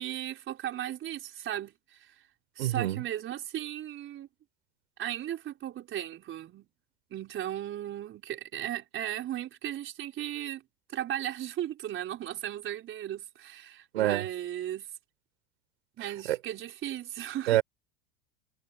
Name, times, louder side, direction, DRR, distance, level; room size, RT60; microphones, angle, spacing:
voice 1, 0.0-2.2 2.6-4.3 5.0-6.7 7.1-10.6 10.9-14.9 16.0-17.6, right 12 dB, 40° right, 4.6 m, -36 dB
voice 2, 2.6-3.0 13.9-14.2 16.3-16.4 17.5-17.6, right 14 dB, 80° right, 4.2 m, -26 dB
hypercardioid pair, 100°, 31 cm